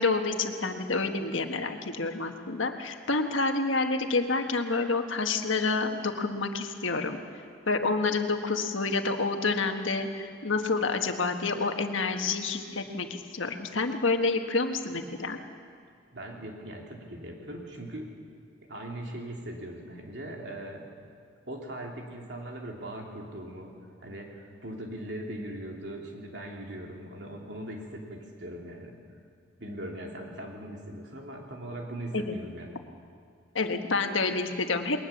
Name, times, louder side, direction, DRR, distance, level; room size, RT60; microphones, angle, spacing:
voice 1, 0.0-7.2 7.7-15.4 32.1-32.3 33.5-35.0, left 3 dB, 85° left, 5 dB, 1.5 m, -28 dB
voice 2, 16.1-18.1 18.6-20.9 21.5-23.8 24.0-29.0 29.6-32.8, right 1 dB, 60° right, 0 dB, 3.1 m, -40 dB
21.0 x 19.5 x 7.2 m, 2.2 s
head